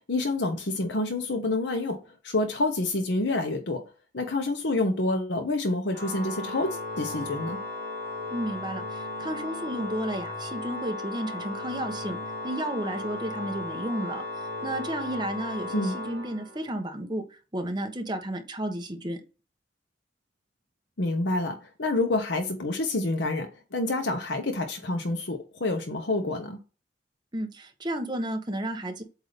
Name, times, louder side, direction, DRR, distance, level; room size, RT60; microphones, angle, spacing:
voice 1, 0.1-3.8 4.1-7.6 15.7-15.9 21.0-26.6, left 2 dB, 70° left, 0.9 m, -28 dB
Organ, 5.9-16.8, left 2 dB, 50° right, 3.1 m, -36 dB
voice 2, 8.3-19.2 27.3-29.0, right 1 dB, 25° right, 1.1 m, -32 dB
8.0 x 2.7 x 5.1 m
head